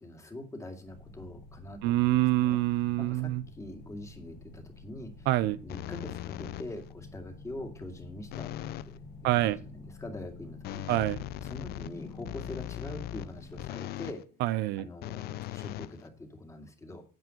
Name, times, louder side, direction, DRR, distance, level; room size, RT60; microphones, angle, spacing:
voice 1, 0.0-2.6 3.0-5.3 5.6-8.5 8.9-10.9 11.4-14.2 14.8-17.0, left 1 dB, 15° left, 2.3 m, -44 dB
sound 1, 0.8-13.6, left 3 dB, 50° left, 2.5 m, -48 dB
voice 2, 1.8-3.4 5.3-5.6 9.2-9.6 10.9-11.2 14.4-14.9, right 16 dB, 90° right, 0.5 m, -26 dB
sound 2, 5.7-6.9 8.3-9.0 10.6-14.2 15.0-16.5, left 15 dB, 70° left, 0.5 m, -39 dB
9.5 x 4.9 x 7.7 m
cardioid pair, 110°, 17 cm